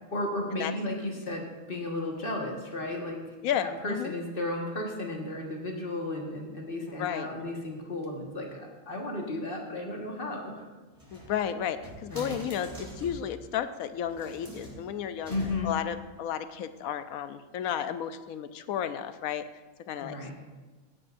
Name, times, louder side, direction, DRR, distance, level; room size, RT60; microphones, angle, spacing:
voice 1, 0.1-3.2 3.6-10.6 12.1-12.4 15.3-15.7 20.0-20.3, left 2 dB, 40° left, 0 dB, 1.7 m, -34 dB
voice 2, 3.4-4.1 7.0-7.3 11.1-15.3 15.6-19.4 19.9-20.3, left 9 dB, 85° left, 11 dB, 1.1 m, -33 dB
sound 1, 10.9-13.3 14.0-15.9, right 1 dB, 25° right, 3.8 m, -45 dB
17.0 x 9.8 x 2.6 m, 1.3 s
omnidirectional pair, 1.4 m